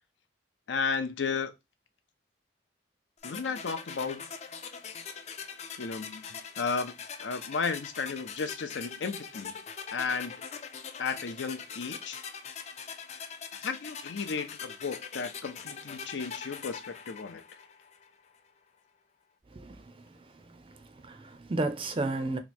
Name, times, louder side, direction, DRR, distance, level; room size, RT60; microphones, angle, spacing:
voice 1, 0.7-1.5 3.2-4.2 5.8-6.9 7.2-9.6 9.9-10.3 11.0-12.2 13.6-17.4, left 5 dB, 80° left, 0.6 m, -34 dB
sound 1, 3.2-18.1, left 6 dB, 35° left, 0.4 m, -42 dB
voice 2, 19.5-20.1 20.6-22.4, right 2 dB, 30° right, 0.4 m, -33 dB
2.9 x 2.3 x 4.2 m
head